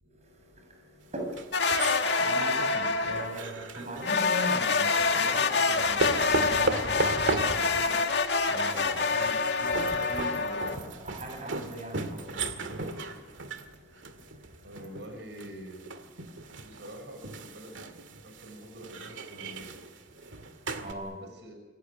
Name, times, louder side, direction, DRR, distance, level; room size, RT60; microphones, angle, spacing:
voice 1, 0.0-9.2 9.6-14.8 16.2-16.8 20.1-21.2, right 1 dB, 35° right, 2 dB, 6.7 m, -42 dB
sound 1, 1.3-4.5 5.2-20.9, right 3 dB, 85° right, 2.1 m, -36 dB
sound 2, 1.5-3.4 4.0-10.8, left 4 dB, 65° left, 2.0 m, -26 dB
voice 2, 9.1-9.4 14.6-15.8 16.6-19.8 21.0-21.5, equal, 65° right, 5 dB, 6.2 m, -46 dB
27.0 x 18.0 x 9.7 m, 1.3 s
head